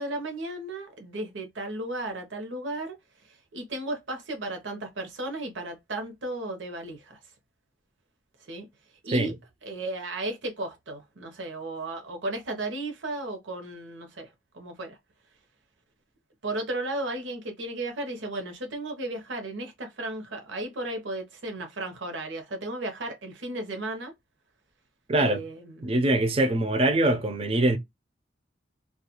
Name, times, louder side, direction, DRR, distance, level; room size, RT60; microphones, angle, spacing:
voice 1, 0.0-2.9 3.5-7.2 8.5-8.7 9.0-9.3 9.6-14.3 14.5-15.0 16.4-24.1 25.2-25.9, right 2 dB, 80° right, 0.8 m, -34 dB
voice 2, 25.1-25.4 25.8-27.8, right 1 dB, 30° right, 0.4 m, -23 dB
2.3 x 2.3 x 2.8 m
head